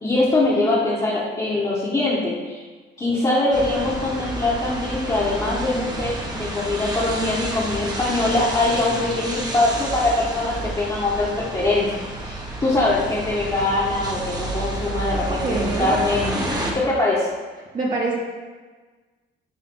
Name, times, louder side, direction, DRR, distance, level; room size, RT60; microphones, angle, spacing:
voice 1, 0.0-2.6 3.0-17.3, left 2 dB, 25° left, -8 dB, 1.6 m, -23 dB
sound 1, 3.5-16.7, right 1 dB, 20° right, 1.3 m, -30 dB
voice 2, 15.3-16.0 17.7-18.2, right 3 dB, 40° right, -6 dB, 1.6 m, -25 dB
10.0 x 3.7 x 4.0 m, 1.3 s
cardioid pair, 90°, 20 cm